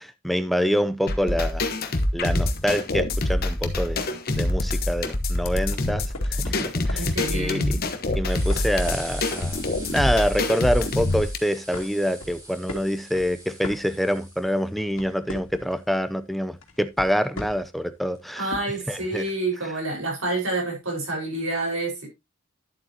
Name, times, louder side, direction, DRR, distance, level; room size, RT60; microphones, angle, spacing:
voice 1, 0.0-1.6 2.1-6.6 6.9-7.8 8.2-9.6 9.9-18.5 18.9-19.2, equal, ahead, 0.5 m, -26 dB
sound 1, 1.1-11.4, left 2 dB, 40° left, 1.1 m, -25 dB
sound 2, 5.3-5.4 5.8-5.9 6.5-7.2 7.8-7.9 8.3-14.7 16.8-16.9 18.1-18.2, right 1 dB, 20° right, 3.9 m, -42 dB
sound 3, 5.5-7.2 8.2-9.6 10.0-10.2 10.7-11.3 11.7-14.3 14.7-15.9 16.6-17.8 18.5-18.6, left 1 dB, 65° left, 2.4 m, -38 dB
voice 2, 7.0-7.8 18.4-22.1, right 2 dB, 65° right, 4.8 m, -28 dB
11.0 x 7.8 x 2.8 m
head